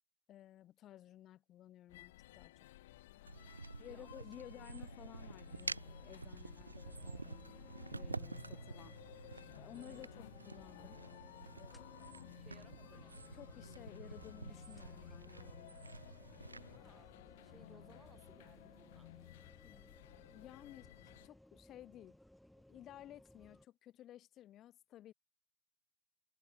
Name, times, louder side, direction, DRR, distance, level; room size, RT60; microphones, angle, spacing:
voice 1, 0.3-2.5 3.8-7.4 7.9-9.0 9.5-11.0 11.5-12.1 13.3-15.8 19.6-19.8 20.3-20.9 21.2-22.2 22.5-25.1, left 13 dB, 30° left, 1.4 m, -55 dB
sound 1, 1.9-21.3, left 17 dB, 55° left, 1.4 m, -57 dB
sound 2, 3.3-16.8, right 3 dB, 80° right, 0.6 m, -49 dB
voice 2, 3.9-4.3 9.7-10.1 12.3-13.2 16.7-19.2, right 5 dB, 15° right, 3.3 m, -64 dB
sound 3, 6.9-23.7, left 1 dB, ahead, 1.0 m, -63 dB
figure-of-eight pair, 90°, 0 cm